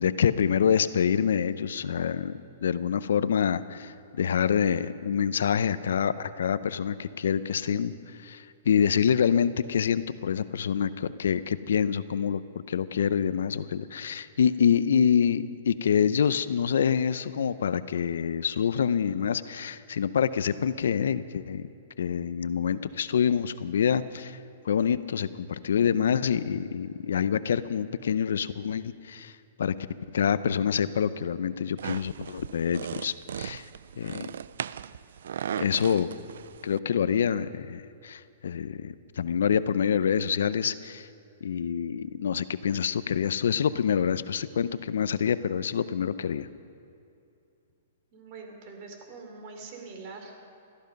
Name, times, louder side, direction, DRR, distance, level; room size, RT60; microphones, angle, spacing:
voice 1, 0.0-7.9 8.2-12.4 12.7-21.7 22.0-24.4 24.6-29.3 29.6-29.7 30.1-33.6 34.0-34.3 35.6-36.1 36.6-41.1 41.4-46.5, left 7 dB, 80° left, 15 dB, 0.6 m, -26 dB
sound 1, 31.8-36.8, right 8 dB, 75° right, 0.4 m, -37 dB
voice 2, 48.1-50.4, right 4 dB, 40° right, 3 dB, 3.2 m, -44 dB
17.5 x 13.5 x 5.3 m, 2.7 s
hypercardioid pair, 150°, 0 cm